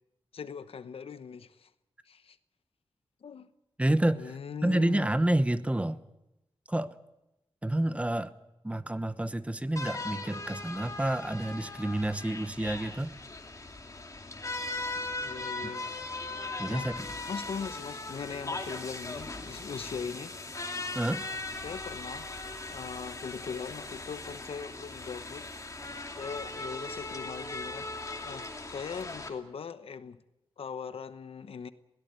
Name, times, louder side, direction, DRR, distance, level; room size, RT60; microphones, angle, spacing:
voice 1, 0.3-1.7 2.1-2.4 3.2-3.5 4.1-5.1 15.2-15.9 16.7-16.9 17.3-20.4 21.6-22.3 22.7-25.5 26.2-30.2 30.6-31.7, left 6 dB, 80° left, 1.0 m, -40 dB
voice 2, 3.8-6.0 6.7-7.0 7.6-8.3 8.6-13.1 15.6-15.7 16.6-17.1 20.9-21.3, right 1 dB, 15° right, 1.0 m, -29 dB
sound 1, 9.8-29.3, left 2 dB, 35° left, 2.7 m, -39 dB
21.0 x 17.0 x 9.5 m
wide cardioid pair, 105°, 10 cm